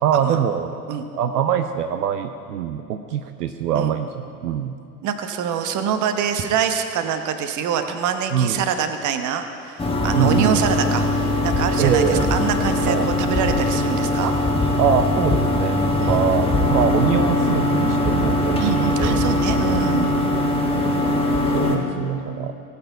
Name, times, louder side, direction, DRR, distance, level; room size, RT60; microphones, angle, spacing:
voice 1, 0.0-0.8 1.1-4.8 8.3-8.6 10.1-10.7 11.8-12.3 12.9-13.1 14.8-15.8 16.0-19.2 19.6-20.1 21.5-22.5, right 8 dB, 70° right, 8 dB, 0.7 m, -23 dB
voice 2, 5.0-14.3 16.0-16.2 18.6-20.1, right 7 dB, 40° right, 8 dB, 1.1 m, -25 dB
sound 1, 9.8-21.8, left 1 dB, 10° left, 1.7 m, -21 dB
18.0 x 8.5 x 4.7 m, 2.4 s
figure-of-eight pair, 75°, 48 cm